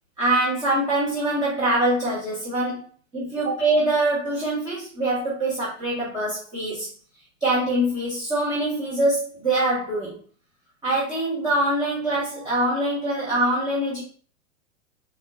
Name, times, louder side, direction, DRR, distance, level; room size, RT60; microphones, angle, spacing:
voice 1, 0.2-2.8 3.1-6.9 7.4-10.1 10.8-14.0, right 1 dB, 10° right, -8 dB, 1.3 m, -24 dB
4.1 x 3.7 x 2.5 m, 0.40 s
figure-of-eight pair, 105°, 40 cm